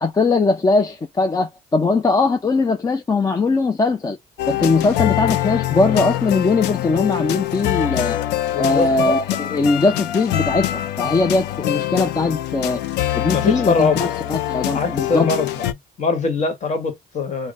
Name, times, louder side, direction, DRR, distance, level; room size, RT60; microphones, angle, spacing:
voice 1, 0.0-4.2 4.5-8.2 8.6-12.8 13.1-15.3, left 3 dB, 20° left, 0.5 m, -20 dB
sound 1, 4.4-15.7, left 14 dB, 90° left, 0.5 m, -24 dB
voice 2, 8.5-9.2 11.0-11.2 13.3-14.1 14.7-15.6 16.0-17.5, left 4 dB, 45° left, 1.4 m, -22 dB
3.5 x 2.2 x 2.5 m
cardioid pair, 110°, 17 cm